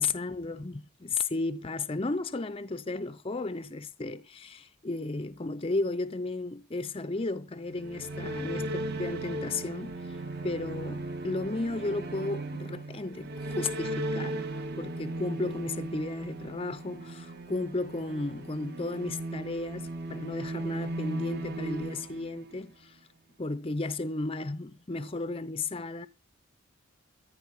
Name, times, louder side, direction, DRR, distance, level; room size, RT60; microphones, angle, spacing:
voice 1, 0.0-10.2 10.4-14.5 14.8-23.0 23.4-26.1, left 3 dB, 25° left, 0.6 m, -34 dB
sound 1, 7.6-22.8, right 2 dB, 50° right, 1.7 m, -37 dB
14.0 x 4.9 x 8.2 m
head